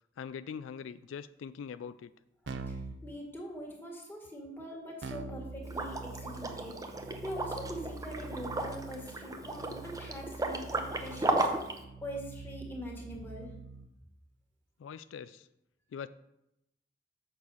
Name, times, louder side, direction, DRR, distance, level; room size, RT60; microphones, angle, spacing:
voice 1, 0.2-2.1 14.8-15.5 15.9-16.1, left 7 dB, 85° left, 14 dB, 0.3 m, -42 dB
voice 2, 2.4-6.7 7.2-11.7 12.0-13.5, equal, 10° left, 0 dB, 1.7 m, -43 dB
Keyboard (musical), 2.5-3.0 5.0-13.9, right 3 dB, 65° right, 0.7 m, -45 dB
Liquid, 5.7-11.8, right 2 dB, 20° right, 0.6 m, -35 dB
6.7 x 6.3 x 5.5 m, 0.86 s
head